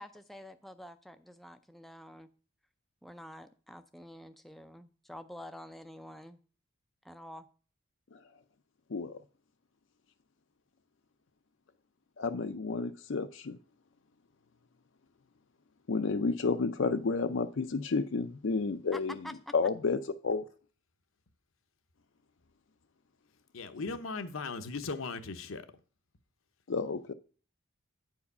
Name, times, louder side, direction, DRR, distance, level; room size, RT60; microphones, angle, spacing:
voice 1, 0.0-2.3 3.0-6.4 7.0-7.5 18.9-19.5, left 1 dB, ahead, 0.4 m, -47 dB
voice 2, 12.2-13.6 15.9-19.1 19.5-20.0 20.2-20.4 26.7-27.1, left 4 dB, 65° left, 0.5 m, -31 dB
voice 3, 23.5-25.7, left 4 dB, 80° left, 0.9 m, -38 dB
9.3 x 4.8 x 5.4 m
head